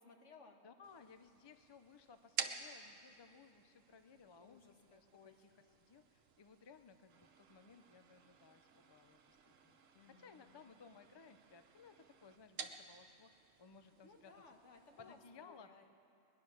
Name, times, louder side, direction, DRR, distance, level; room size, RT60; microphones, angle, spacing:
voice 1, 0.0-0.6 4.4-5.4 9.9-10.7 14.0-15.9, left 4 dB, 70° left, 3 dB, 1.7 m, -61 dB
voice 2, 0.6-9.8 10.1-14.3 15.0-15.7, left 5 dB, 45° left, 10 dB, 0.3 m, -61 dB
sound 1, 0.8-15.2, right 6 dB, 90° right, 1.2 m, -52 dB
20.5 x 10.5 x 6.4 m, 2.6 s
omnidirectional pair, 1.3 m